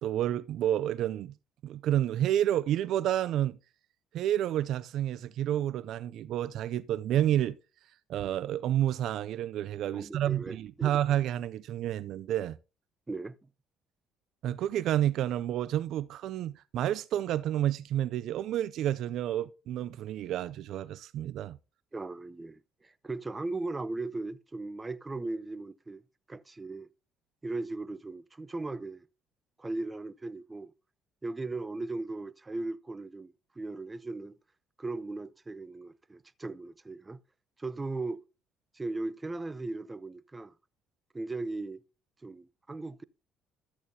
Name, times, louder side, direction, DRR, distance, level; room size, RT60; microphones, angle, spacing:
voice 1, 0.0-1.3 1.6-3.6 4.1-7.6 8.1-12.6 14.4-21.6, right 11 dB, 70° right, 0.4 m, -30 dB
voice 2, 9.9-10.9 13.1-13.3 21.9-26.0 26.3-26.9 27.4-29.0 29.6-30.7 31.2-34.4 34.8-37.2 37.6-38.2 38.7-40.5 41.1-41.8 42.2-43.0, right 2 dB, 20° right, 0.7 m, -37 dB
13.0 x 8.4 x 2.8 m
supercardioid pair, 65°, 0 cm